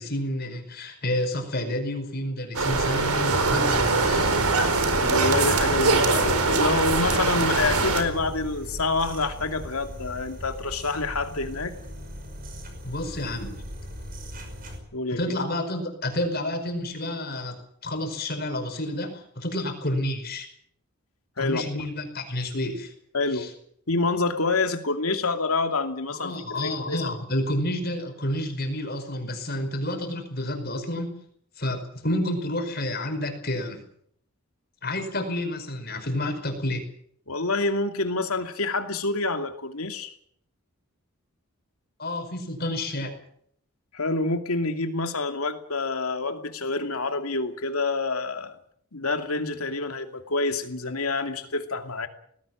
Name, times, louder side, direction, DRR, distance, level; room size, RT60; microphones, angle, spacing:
voice 1, 0.0-4.3 12.8-13.6 15.1-20.5 21.4-22.9 23.3-23.5 26.1-31.2 31.6-33.8 34.8-36.8 42.0-43.1, left 1 dB, 45° left, 6 dB, 5.2 m, -30 dB
sound 1, 2.5-8.0, right 3 dB, 85° right, 4.4 m, -22 dB
sound 2, 4.4-14.8, equal, 40° right, 5.7 m, -38 dB
voice 2, 5.0-11.7 14.9-15.3 21.4-21.9 23.1-23.5 23.9-26.3 26.6-27.1 37.3-40.1 43.9-48.5 48.9-52.1, left 3 dB, 80° left, 7 dB, 2.6 m, -27 dB
19.5 x 17.0 x 9.1 m, 0.66 s
head